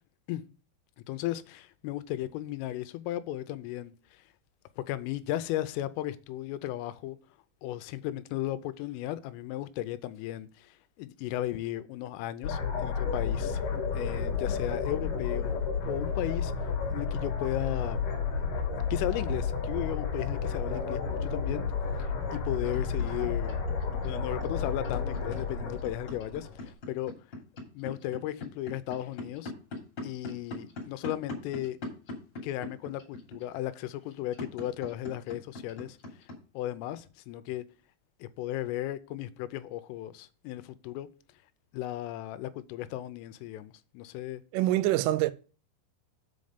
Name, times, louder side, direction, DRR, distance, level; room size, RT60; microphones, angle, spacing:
voice 1, 1.1-4.2 4.8-7.2 7.6-13.7 13.9-15.5 15.9-16.5 16.9-18.0 18.9-21.7 22.0-23.6 24.0-27.1 27.7-29.5 30.0-31.8 32.4-36.0 36.5-37.7 38.2-41.1 41.7-44.4, left 14 dB, 90° left, 3.2 m, -35 dB
sound 1, 12.4-26.7, left 5 dB, 60° left, 2.3 m, -31 dB
sound 2, 22.7-36.4, left 2 dB, 30° left, 2.4 m, -40 dB
voice 2, 44.5-45.3, right 15 dB, 85° right, 3.1 m, -25 dB
7.7 x 5.3 x 5.1 m
omnidirectional pair, 5.7 m